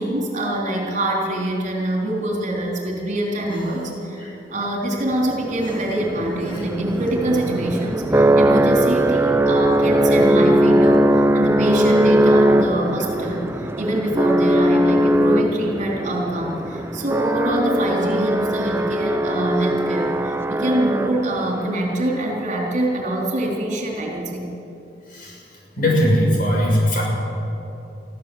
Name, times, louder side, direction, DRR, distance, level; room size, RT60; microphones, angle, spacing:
voice 1, 0.0-24.5, right 1 dB, 45° right, -1 dB, 3.7 m, -24 dB
Female speech woman speaking, 3.5-4.1 5.6-7.9, right 1 dB, 30° left, 5.0 m, -33 dB
sound 1, 5.3-21.5, right 1 dB, 15° right, 0.5 m, -19 dB
voice 2, 25.1-25.4 25.8-27.0, equal, 50° left, -2 dB, 6.3 m, -19 dB
22.5 x 14.5 x 7.9 m, 2.9 s
head